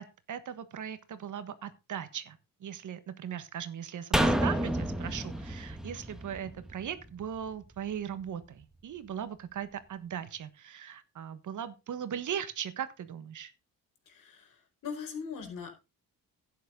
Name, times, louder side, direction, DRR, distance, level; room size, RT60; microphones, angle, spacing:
voice 1, 0.0-13.5, right 9 dB, 65° right, 12 dB, 1.4 m, -39 dB
sound 1, 4.1-7.5 7.8-7.9, right 1 dB, ahead, 1.4 m, -30 dB
voice 2, 14.1-15.7, left 6 dB, 75° left, 4 dB, 4.5 m, -41 dB
11.5 x 9.3 x 3.8 m, 0.27 s
cardioid pair, 105°, 33 cm